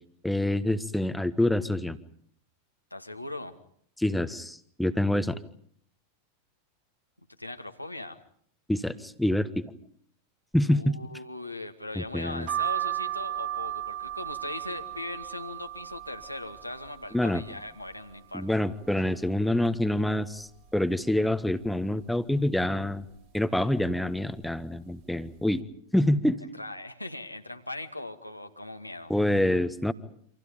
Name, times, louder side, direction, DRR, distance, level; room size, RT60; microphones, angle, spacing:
voice 1, 0.2-2.0 4.0-5.4 8.7-9.7 10.5-11.0 11.9-12.5 17.1-17.4 18.3-23.0 23.3-25.6 25.9-26.4 29.1-29.9, left 1 dB, 5° left, 12 dB, 1.4 m, -26 dB
voice 2, 2.9-3.6 7.4-8.2 10.7-18.6 26.6-29.1, left 2 dB, 85° left, 5 dB, 2.1 m, -39 dB
sound 1, 12.5-18.1 18.6-19.4 19.8-19.9 20.0-21.2 21.6-22.0 22.8-23.1 23.9-24.1 24.4-24.6, right 12 dB, 50° right, 4.4 m, -36 dB
29.5 x 27.0 x 5.3 m, 0.62 s
figure-of-eight pair, 90°, 0 cm